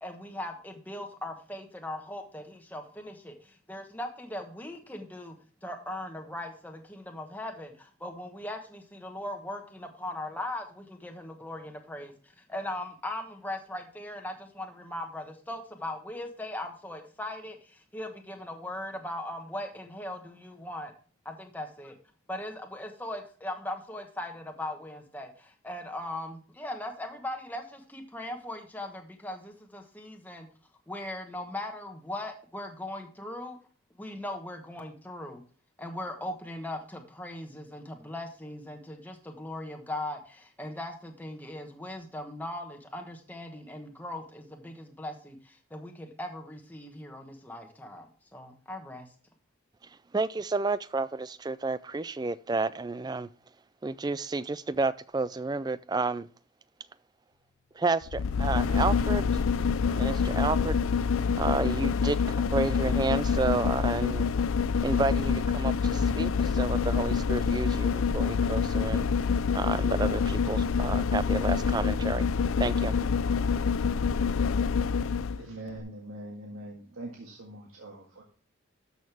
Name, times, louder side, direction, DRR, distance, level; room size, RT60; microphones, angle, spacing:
voice 1, 0.0-5.3 5.6-20.9 21.2-22.0 22.3-30.5 30.9-33.6 34.0-35.4 35.8-49.1, left 1 dB, 10° left, 4 dB, 1.2 m, -39 dB
voice 2, 50.1-53.3 53.8-56.3 57.8-59.3 59.9-60.7 61.4-64.3 64.8-69.0 69.5-72.3 72.6-72.9, right 3 dB, 20° right, 17 dB, 0.3 m, -30 dB
sound 1, 58.0-75.4 75.8-75.9, left 5 dB, 80° left, 0.4 m, -26 dB
voice 3, 75.2-78.2, right 1 dB, 85° right, -1 dB, 1.9 m, -43 dB
12.5 x 6.5 x 3.4 m, 0.42 s
head